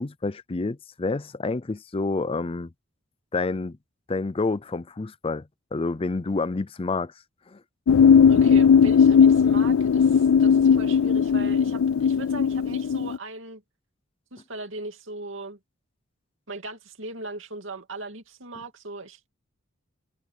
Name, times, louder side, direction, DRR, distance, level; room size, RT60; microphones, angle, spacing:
voice 1, 0.0-2.7 3.3-3.8 4.1-5.4 5.7-7.1 7.5-7.6, left 3 dB, 25° left, 0.5 m, -28 dB
sound 1, 7.9-13.2, left 7 dB, 85° left, 0.4 m, -18 dB
voice 2, 8.3-13.6 14.3-15.6 16.5-19.3, right 2 dB, 65° right, 2.7 m, -38 dB
head